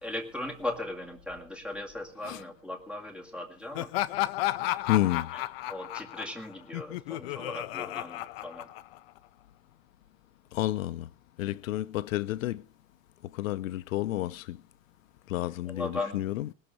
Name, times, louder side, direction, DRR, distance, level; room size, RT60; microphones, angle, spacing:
voice 1, 0.0-3.9 5.3-5.4 5.7-8.7 11.4-11.6 15.7-16.2, left 2 dB, ahead, 2.0 m, -38 dB
Laughter, 3.7-9.2, left 16 dB, 50° left, 0.7 m, -33 dB
voice 2, 4.9-5.3 10.5-11.1 11.4-12.6 13.3-14.6 15.3-16.5, left 14 dB, 85° left, 0.8 m, -30 dB
20.5 x 6.8 x 6.5 m
supercardioid pair, 165°, 39 cm